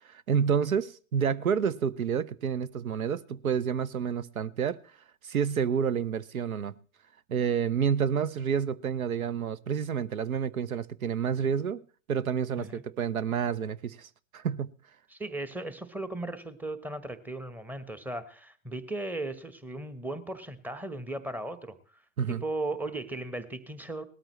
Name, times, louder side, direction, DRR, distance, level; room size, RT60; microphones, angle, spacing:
voice 1, 0.0-4.8 5.2-6.7 7.3-11.8 12.1-14.7 22.2-22.4, right 7 dB, 80° right, 0.6 m, -29 dB
voice 2, 15.1-21.8 22.3-24.0, right 2 dB, 5° right, 1.0 m, -36 dB
19.0 x 13.0 x 3.1 m
figure-of-eight pair, 90°, 41 cm